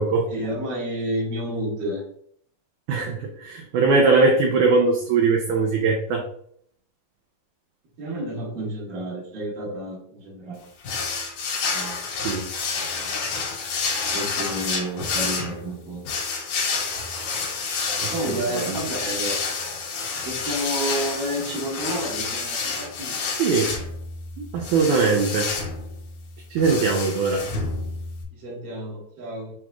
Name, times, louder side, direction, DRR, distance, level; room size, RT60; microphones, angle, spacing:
voice 1, 0.3-2.0 8.0-10.6 11.6-12.0 14.1-16.0 18.1-19.4 20.2-23.3 28.3-29.5, right 1 dB, 50° right, -3 dB, 1.5 m, -30 dB
voice 2, 2.9-6.2 11.7-11.9 12.2-12.4 13.9-14.1 18.0-18.8 23.4-23.7 24.4-25.5 26.5-27.4, right 4 dB, 80° right, 1 dB, 1.8 m, -21 dB
sound 1, 10.8-28.2, left 4 dB, 65° left, 1.8 m, -29 dB
7.0 x 3.0 x 2.3 m, 0.64 s
omnidirectional pair, 4.1 m